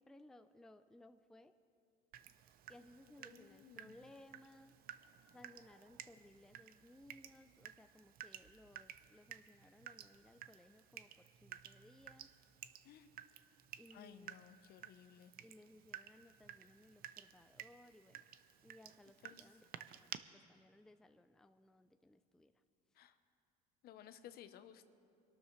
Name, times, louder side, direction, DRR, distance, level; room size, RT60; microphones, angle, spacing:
voice 1, 0.0-1.5 2.7-4.8 5.3-12.3 13.8-14.4 15.4-18.3 18.6-22.5, left 1 dB, 5° left, 10 dB, 0.4 m, -62 dB
Water tap faucet / Drip, 2.1-20.2, right 11 dB, 50° right, 0.6 m, -55 dB
voice 2, 3.2-4.0 12.8-13.1 13.9-15.3 19.2-19.4 23.0-23.1 23.8-24.9, left 10 dB, 55° left, 11 dB, 0.8 m, -57 dB
24.5 x 12.5 x 3.2 m, 2.5 s
supercardioid pair, 100°, 19 cm